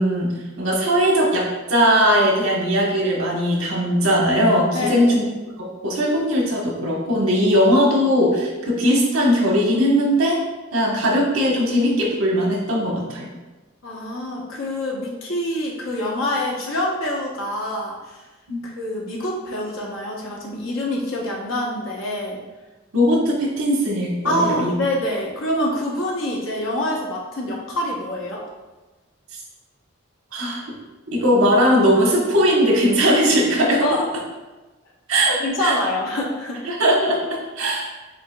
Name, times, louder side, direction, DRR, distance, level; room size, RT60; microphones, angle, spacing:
voice 1, 0.0-5.2 5.6-10.4 10.7-13.3 18.5-18.6 22.9-24.7 30.3-30.6 31.1-34.0 35.1-35.8 36.6-37.9, equal, 90° right, -2 dB, 1.1 m, -19 dB
voice 2, 4.7-5.1 13.8-18.2 18.6-22.4 24.2-28.4 33.8-34.0 35.4-36.7, left 1 dB, 70° left, -3 dB, 1.0 m, -26 dB
7.5 x 2.9 x 2.3 m, 1.2 s
head